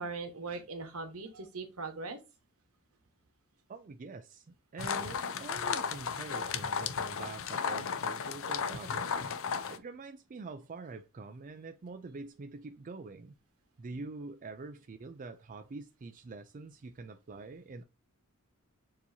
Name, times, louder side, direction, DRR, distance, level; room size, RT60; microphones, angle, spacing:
voice 1, 0.0-2.2, right 3 dB, 75° right, 1.2 m, -40 dB
voice 2, 3.7-13.3 13.8-17.8, right 3 dB, 35° right, 0.4 m, -45 dB
sound 1, 4.8-9.8, left 6 dB, 65° left, 0.6 m, -34 dB
6.8 x 2.9 x 2.7 m
head